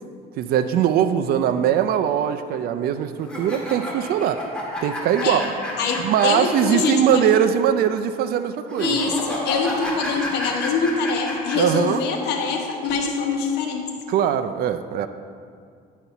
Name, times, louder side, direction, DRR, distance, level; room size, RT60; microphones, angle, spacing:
voice 1, 0.4-4.4 4.8-5.5 6.0-9.0 11.5-12.0 14.1-15.1, right 9 dB, 65° right, 10 dB, 0.4 m, -21 dB
sound 1, 3.2-6.9 7.2-7.3 8.7-11.8, equal, 5° left, 2.0 m, -30 dB
voice 2, 5.8-7.3 8.8-13.9, left 5 dB, 80° left, 2 dB, 1.2 m, -24 dB
10.5 x 4.1 x 5.7 m, 2.2 s
cardioid pair, 110°, 17 cm